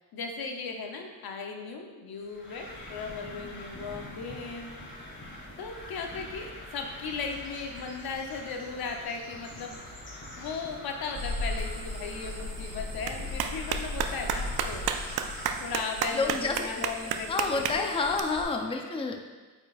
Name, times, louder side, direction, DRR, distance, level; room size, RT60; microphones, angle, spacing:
voice 1, 0.0-4.8 5.6-9.8 10.4-14.8 15.6-18.2, left 4 dB, 70° left, 3 dB, 0.9 m, -37 dB
sound 1, 2.2-15.6, left 1 dB, 30° left, 1.6 m, -44 dB
sound 2, 11.1-18.4, left 2 dB, 50° right, 1.8 m, -38 dB
Clapping, 11.6-18.2, right 7 dB, 75° right, 0.5 m, -34 dB
voice 2, 16.1-16.7 17.1-19.2, left 4 dB, 15° left, 3 dB, 0.6 m, -29 dB
8.2 x 4.9 x 2.5 m, 1.3 s
cardioid pair, 75°, 38 cm